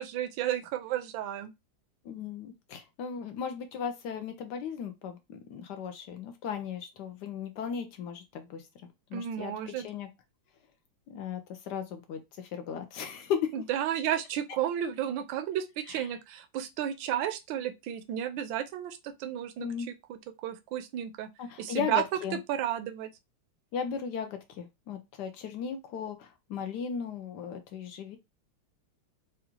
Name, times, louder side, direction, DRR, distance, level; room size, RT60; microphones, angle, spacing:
voice 1, 0.0-1.5 9.1-9.9 13.5-21.3 21.6-22.0 22.5-23.1, right 11 dB, 75° right, 1.2 m, -33 dB
voice 2, 2.0-8.7 9.1-10.1 11.1-13.5 15.9-16.0 19.6-19.9 21.4-22.4 23.7-28.2, left 7 dB, 80° left, 0.9 m, -36 dB
4.9 x 2.3 x 2.9 m
omnidirectional pair, 2.3 m